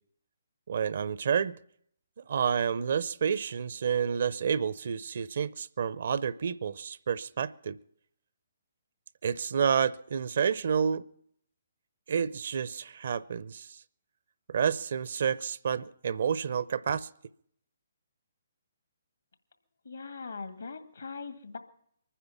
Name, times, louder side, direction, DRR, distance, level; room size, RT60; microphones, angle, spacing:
voice 1, 0.7-1.6 2.2-7.8 9.2-11.0 12.1-13.8 14.5-17.1, right 7 dB, 55° right, 0.5 m, -29 dB
voice 2, 19.9-21.6, left 4 dB, 70° left, 1.8 m, -41 dB
23.0 x 10.0 x 5.9 m
figure-of-eight pair, 135°, 0 cm